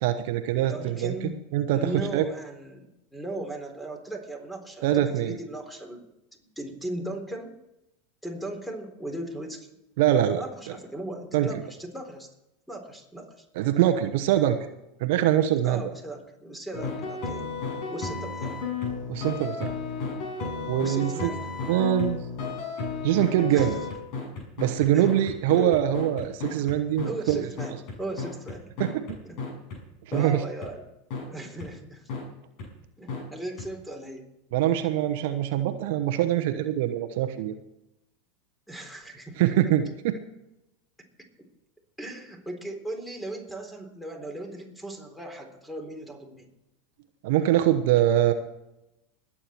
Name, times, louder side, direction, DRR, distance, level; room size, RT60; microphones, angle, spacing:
voice 1, 0.0-1.1 1.5-2.2 4.8-5.4 10.0-10.4 11.3-11.5 13.5-14.6 15.0-15.8 19.1-19.7 20.7-21.3 21.7-22.2 23.0-23.7 24.6-27.5 28.8-29.2 30.1-30.4 34.5-37.5 39.4-40.2 47.2-48.3, right 12 dB, 65° right, 9 dB, 1.0 m, -23 dB
voice 2, 0.6-1.3 1.7-6.0 6.4-7.5 8.2-9.7 10.3-12.3 12.7-13.5 15.6-17.5 17.9-18.6 20.8-21.5 23.5-23.8 24.9-25.1 25.5-26.2 27.0-28.7 29.2-29.4 30.1-30.8 31.3-32.1 33.0-34.3 38.7-39.4 42.0-46.5, right 1 dB, 5° left, 4 dB, 3.9 m, -37 dB
sound 1, 16.7-29.8 30.1-30.2 30.6-30.7 31.1-31.2 31.6-31.7 32.1-32.2 32.6-32.7 33.1-33.2 33.6-33.7, left 4 dB, 55° left, 6.4 m, -33 dB
21.0 x 8.7 x 4.6 m, 0.90 s
hypercardioid pair, 95°, 0 cm